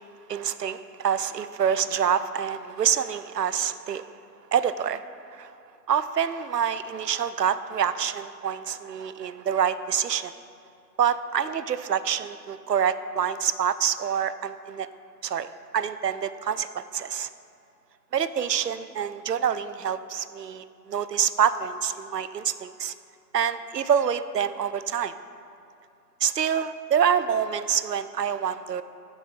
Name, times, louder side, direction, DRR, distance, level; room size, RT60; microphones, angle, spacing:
voice 1, 0.3-4.1 4.5-5.0 5.3-5.5 5.9-10.3 11.0-14.9 15.2-15.5 15.7-17.3 18.1-22.9 23.3-25.1 26.2-28.8, right 8 dB, 75° right, 14 dB, 0.5 m, -26 dB
6.9 x 6.2 x 5.2 m, 2.6 s
figure-of-eight pair, 165°, 50 cm